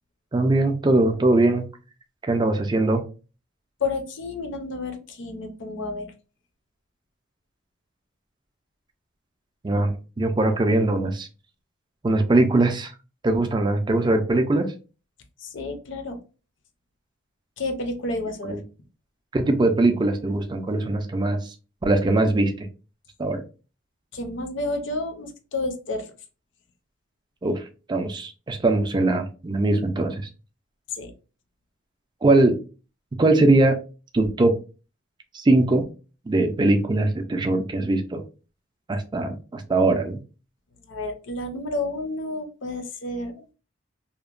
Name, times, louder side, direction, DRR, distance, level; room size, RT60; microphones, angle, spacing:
voice 1, 0.3-1.7 2.3-3.0 9.6-11.3 12.0-12.9 13.2-14.7 18.5-18.6 19.3-21.5 21.8-22.7 23.2-23.4 27.4-27.6 27.9-30.3 32.2-32.6 33.2-33.8 34.1-34.6 35.3-35.9 36.3-38.2 38.9-40.2, right 2 dB, 20° right, 6 dB, 0.3 m, -21 dB
voice 2, 3.8-6.1 15.4-16.2 17.6-18.6 24.1-26.1 30.9-31.1 40.8-43.5, left 2 dB, 60° left, 7 dB, 0.5 m, -30 dB
2.8 x 2.1 x 2.4 m, 0.34 s
head